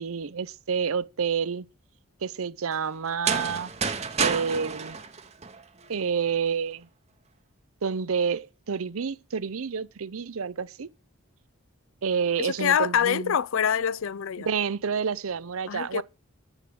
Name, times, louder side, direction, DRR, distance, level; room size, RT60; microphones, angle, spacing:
voice 1, 0.0-1.7 2.2-3.7 4.2-5.0 5.9-6.9 7.8-10.9 12.0-13.4 14.4-16.0, right 6 dB, 75° right, 0.6 m, -29 dB
sound 1, 3.1-6.0, right 5 dB, 30° right, 0.9 m, -29 dB
voice 2, 12.4-14.5 15.7-16.0, left 8 dB, 65° left, 0.4 m, -25 dB
9.9 x 4.9 x 7.8 m
head